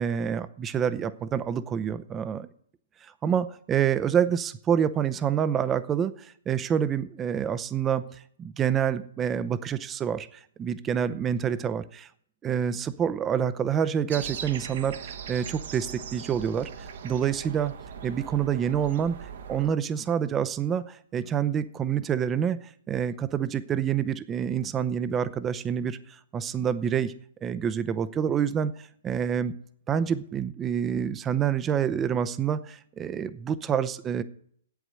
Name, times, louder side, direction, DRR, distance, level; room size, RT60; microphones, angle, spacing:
voice 1, 0.0-2.5 3.0-10.3 10.6-12.1 12.4-16.7 17.0-17.7 18.0-22.6 22.9-26.0 26.3-27.1 27.4-29.5 29.9-34.2, right 8 dB, 20° right, 14 dB, 0.6 m, -27 dB
sound 1, 14.1-19.7, right 7 dB, 60° right, 1.0 m, -39 dB
8.3 x 8.1 x 7.6 m, 0.63 s
hypercardioid pair, 140°, 0 cm